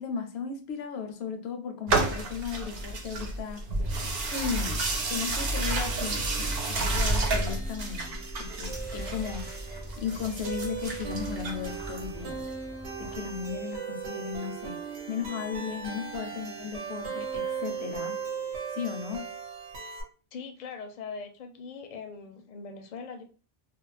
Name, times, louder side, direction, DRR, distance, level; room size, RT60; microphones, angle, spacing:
voice 1, 0.0-3.6 4.3-9.5 10.0-12.5 13.0-14.8 15.1-18.2 18.7-19.2, left 7 dB, 75° left, 0.8 m, -36 dB
sound 1, 1.9-12.4, right 2 dB, 65° right, 0.8 m, -31 dB
sound 2, 5.6-20.0, right 6 dB, 90° right, 1.0 m, -38 dB
sound 3, 8.7-13.7, right 1 dB, 20° right, 0.3 m, -43 dB
voice 2, 20.3-23.2, left 5 dB, 55° left, 0.6 m, -41 dB
2.4 x 2.0 x 3.2 m
omnidirectional pair, 1.1 m